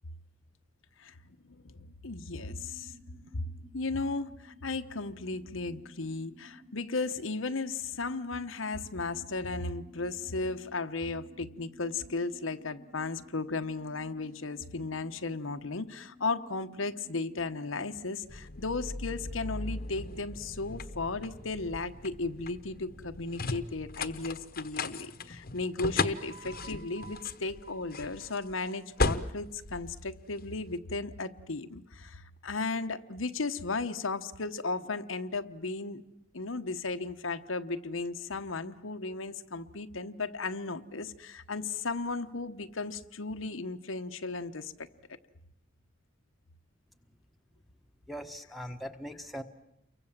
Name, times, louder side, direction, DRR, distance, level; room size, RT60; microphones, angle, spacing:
voice 1, 1.4-2.9 3.3-3.5 3.7-36.0 36.3-44.9, left 3 dB, 85° left, 8 dB, 1.1 m, -35 dB
sound 1, 2.4-18.1, left 1 dB, 30° right, 4.1 m, -56 dB
sound 2, 18.3-30.6, left 3 dB, 50° left, 1.1 m, -37 dB
voice 2, 48.1-49.4, equal, ahead, 7 dB, 1.3 m, -40 dB
29.0 x 23.5 x 7.5 m, 0.82 s
head